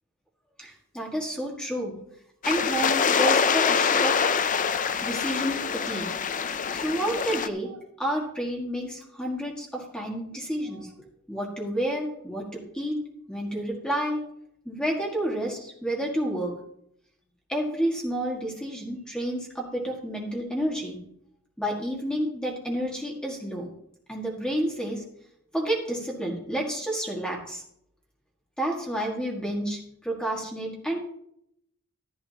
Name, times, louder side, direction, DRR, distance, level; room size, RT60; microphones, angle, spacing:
voice 1, 0.6-1.9 2.4-4.1 5.0-6.0 6.7-10.9 11.3-13.0 13.3-14.3 14.7-16.6 17.5-21.0 21.6-23.7 24.1-25.0 25.5-27.6 28.6-31.0, right 1 dB, 5° left, -2 dB, 1.8 m, -30 dB
sound 1, 2.4-7.5, left 6 dB, 35° left, 0.5 m, -25 dB
12.5 x 11.5 x 2.9 m, 0.74 s
head